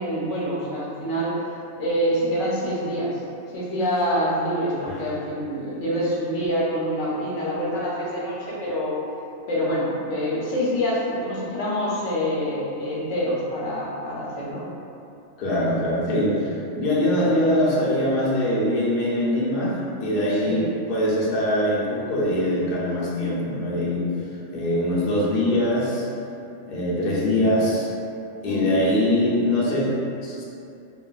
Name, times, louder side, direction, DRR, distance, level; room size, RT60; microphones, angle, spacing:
voice 1, 0.0-1.4 1.8-3.2 3.5-9.0 9.5-14.6 20.3-20.7 28.4-28.8, equal, 80° left, -6 dB, 1.0 m, -26 dB
voice 2, 15.4-20.6 20.9-24.1 24.5-26.1 26.7-27.9 28.4-29.9 30.2-30.4, left 1 dB, 60° left, -6 dB, 0.7 m, -23 dB
2.8 x 2.4 x 2.3 m, 2.7 s
omnidirectional pair, 1.3 m